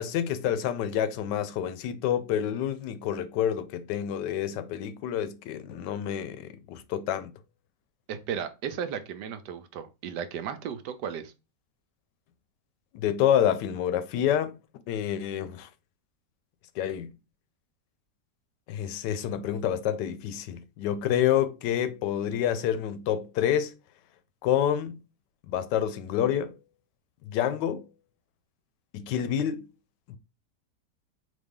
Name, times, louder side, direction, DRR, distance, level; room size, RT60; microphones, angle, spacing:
voice 1, 0.0-7.3 12.9-14.5 14.9-15.7 16.8-17.1 18.7-23.7 24.4-25.0 25.5-26.5 27.2-27.8 28.9-29.7 30.1-30.2, left 10 dB, 85° left, 1.2 m, -28 dB
voice 2, 8.1-11.3, right 8 dB, 80° right, 1.2 m, -35 dB
4.1 x 3.0 x 3.6 m
omnidirectional pair, 1.8 m